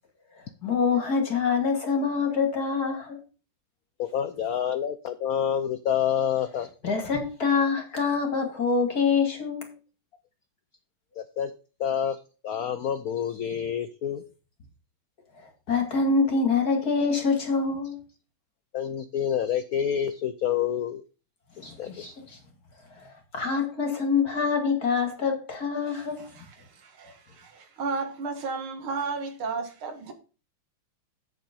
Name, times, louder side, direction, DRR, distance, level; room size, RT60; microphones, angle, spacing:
voice 1, 0.6-3.2 6.8-9.7 15.4-18.0 21.6-22.4 23.0-26.3, left 5 dB, 45° left, 2.7 m, -25 dB
voice 2, 4.0-6.7 11.2-11.5 11.8-12.2 12.4-14.2 18.7-21.0 21.6-22.1, left 9 dB, 75° left, 0.8 m, -28 dB
voice 3, 26.2-30.1, right 4 dB, 80° right, 2.5 m, -34 dB
8.1 x 7.5 x 5.3 m
omnidirectional pair, 2.3 m